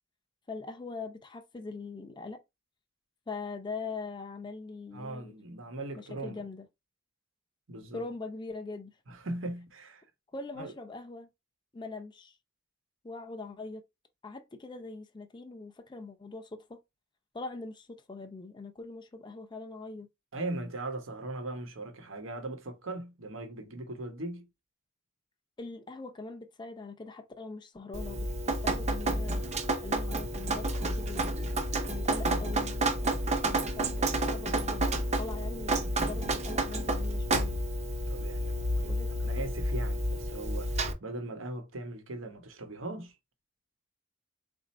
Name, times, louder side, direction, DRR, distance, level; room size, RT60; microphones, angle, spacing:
voice 1, 0.5-2.4 3.3-5.3 5.9-6.7 7.9-8.9 10.3-11.3 11.7-12.4 13.0-13.8 14.2-16.8 17.3-20.1 25.6-29.4 29.8-31.4 31.9-33.2 33.4-37.5 38.8-39.2, left 3 dB, 25° left, 0.5 m, -42 dB
voice 2, 4.9-6.4 7.7-8.0 9.1-10.0 10.6-10.7 20.3-24.5 38.1-40.7 41.0-43.2, right 2 dB, 90° right, 1.0 m, -39 dB
Drip, 27.9-40.9, right 1 dB, 35° right, 0.7 m, -30 dB
4.2 x 2.6 x 4.0 m
head